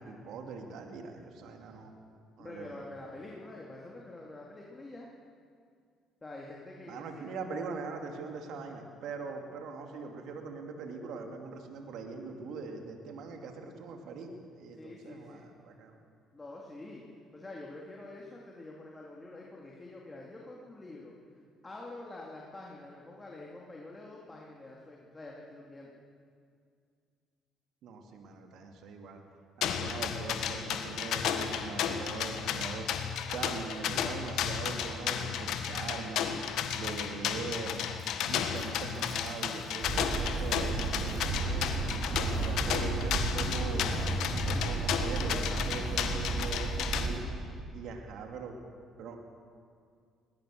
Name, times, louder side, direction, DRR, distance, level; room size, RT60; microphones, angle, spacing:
voice 1, 0.0-1.9 2.4-2.8 6.9-15.9 27.8-29.2 29.6-32.9 33.3-36.3 36.7-37.8 38.3-41.7 42.1-43.9 44.3-47.2 47.7-48.6 49.0-49.2, right 4 dB, 65° right, 3 dB, 2.5 m, -41 dB
voice 2, 2.4-5.1 6.2-7.3 14.7-15.4 16.3-17.0 17.3-21.1 21.6-25.9 45.2-45.6, left 2 dB, 25° left, -3 dB, 3.5 m, -46 dB
sound 1, 29.6-47.1, left 8 dB, 70° left, 1.6 m, -33 dB
Tearing, 37.9-41.6, right 1 dB, 30° right, 5.4 m, -52 dB
sound 2, 39.8-47.2, right 3 dB, 45° right, 6.2 m, -33 dB
21.0 x 20.0 x 6.6 m, 2.2 s
hypercardioid pair, 55°, 0 cm